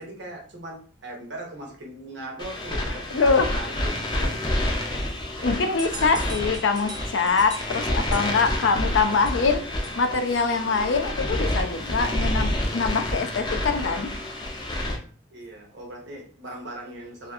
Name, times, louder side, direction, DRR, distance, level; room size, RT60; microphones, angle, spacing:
voice 1, 0.0-4.3 15.3-17.3, right 1 dB, 70° right, 0 dB, 0.8 m, -39 dB
sound 1, 2.4-15.0, left 1 dB, 25° left, 0.4 m, -28 dB
voice 2, 3.1-3.5 5.4-9.6 10.0-14.1, left 4 dB, 80° left, 6 dB, 0.4 m, -23 dB
sound 2, 5.8-10.3, right 2 dB, 20° right, 0.6 m, -42 dB
2.6 x 2.4 x 2.4 m, 0.43 s
head